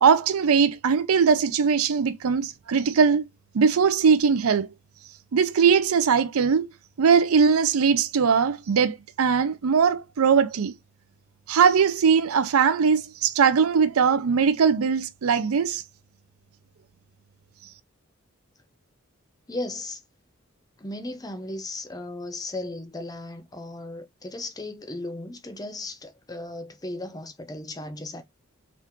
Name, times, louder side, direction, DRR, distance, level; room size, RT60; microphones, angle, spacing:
voice 1, 0.0-3.2 3.5-4.7 5.3-6.7 7.0-10.7 11.5-15.8, right 6 dB, 90° right, 0.5 m, -20 dB
voice 2, 19.5-20.0 20.8-28.2, left 2 dB, 15° left, 0.6 m, -36 dB
3.6 x 2.4 x 4.3 m
head